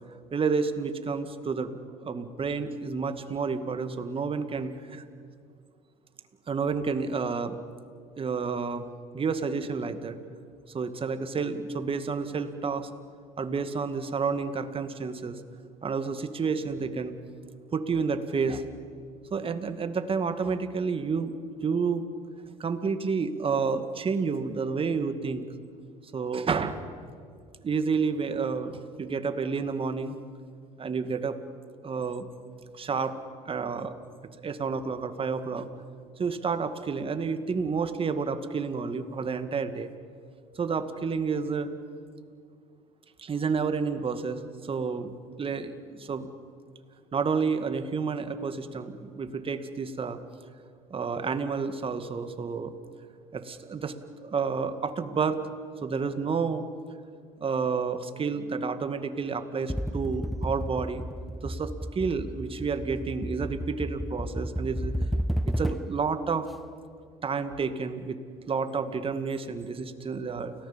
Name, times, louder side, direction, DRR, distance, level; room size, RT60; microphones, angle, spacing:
voice 1, 0.3-1.7 2.0-5.0 6.5-7.6 8.2-8.8 9.1-10.2 10.7-12.9 13.4-15.4 15.8-17.1 17.7-18.7 19.3-21.3 21.6-22.0 22.6-25.4 26.1-26.8 27.6-30.2 30.8-31.4 31.8-32.3 32.7-33.1 33.5-33.9 34.4-35.7 36.2-39.9 40.6-41.7 43.2-45.1 45.4-46.3 47.1-50.2 50.9-52.7 53.3-53.9 54.2-55.4 55.8-56.6 57.4-61.0 61.4-64.9 65.5-66.5 67.2-68.2 68.5-70.5, right 5 dB, 35° right, 9 dB, 2.1 m, -30 dB
sound 1, 59.7-66.1, equal, ahead, 0.5 m, -32 dB
29.5 x 18.5 x 7.4 m, 2.2 s
hypercardioid pair, 75°, 16 cm